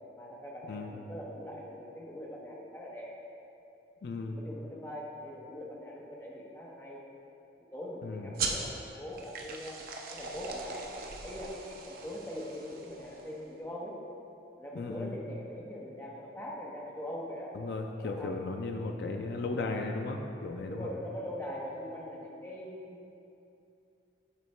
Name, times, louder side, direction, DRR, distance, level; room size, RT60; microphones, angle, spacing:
voice 1, 0.1-3.1 4.3-7.0 7.7-9.8 10.1-14.0 14.6-17.5 18.0-18.4 20.7-23.0, left 1 dB, 10° left, -3 dB, 0.6 m, -42 dB
voice 2, 4.0-4.4 8.0-8.4 14.8-15.2 17.5-20.9, left 3 dB, 60° left, 3 dB, 0.3 m, -36 dB
sound 1, 8.3-13.4, right 4 dB, 50° right, 0.5 m, -40 dB
8.3 x 3.8 x 3.2 m, 2.7 s
head